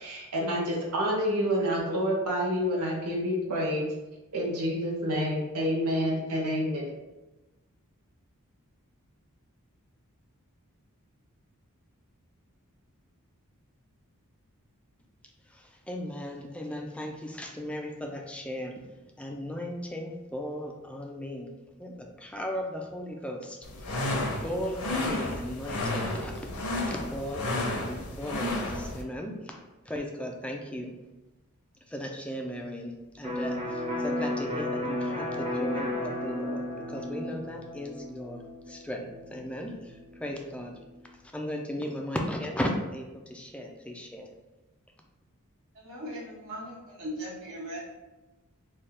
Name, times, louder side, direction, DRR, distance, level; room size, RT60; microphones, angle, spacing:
voice 1, 0.0-3.9 4.3-6.9, equal, 85° right, -3 dB, 0.8 m, -28 dB
voice 2, 15.4-21.5 21.8-24.1 24.4-26.6 26.9-31.0 31.9-40.8 41.0-44.3, equal, 5° left, 1 dB, 0.4 m, -37 dB
sound 1, 23.6-29.0, left 2 dB, 70° left, 0.7 m, -32 dB
Electric guitar, 33.2-40.9, left 1 dB, 25° right, 0.8 m, -34 dB
voice 3, 45.7-47.9, equal, 65° right, -5 dB, 1.4 m, -39 dB
3.3 x 2.3 x 4.2 m, 1.1 s
head